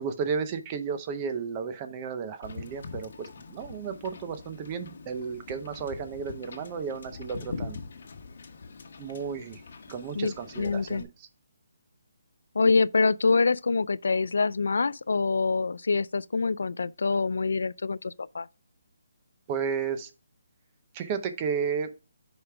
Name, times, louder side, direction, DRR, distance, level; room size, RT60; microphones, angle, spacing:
voice 1, 0.0-7.8 9.0-9.6 9.9-11.3 19.5-20.1 20.9-21.9, right 6 dB, 20° right, 0.6 m, -33 dB
Wind / Boat Water vehicle, 2.4-11.0, left 4 dB, 50° left, 1.0 m, -43 dB
voice 2, 10.2-11.0 12.6-18.5, left 4 dB, 75° left, 0.3 m, -25 dB
7.8 x 5.0 x 3.5 m
hypercardioid pair, 175°, 0 cm